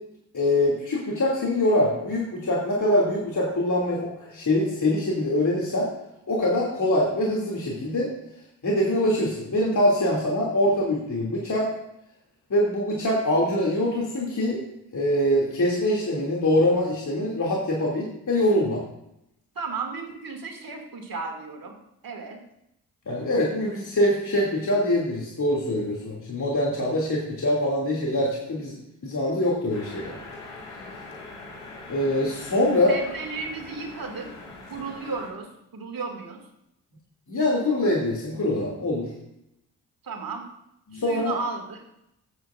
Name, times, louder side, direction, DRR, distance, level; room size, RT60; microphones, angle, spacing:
voice 1, 0.3-5.9 6.3-8.1 8.6-11.7 12.5-14.6 14.9-18.8 23.1-28.8 29.0-30.1 31.9-32.9 37.3-39.1 40.9-41.3, left 1 dB, 50° left, -4 dB, 2.7 m, -24 dB
voice 2, 19.6-21.7 22.0-22.4 32.9-36.4 40.0-40.4 40.9-41.8, right 4 dB, 55° right, 3 dB, 2.3 m, -34 dB
sound 1, 29.7-35.3, left 2 dB, 85° left, 2.4 m, -42 dB
14.0 x 9.4 x 2.5 m, 0.82 s
hypercardioid pair, 40°, 40 cm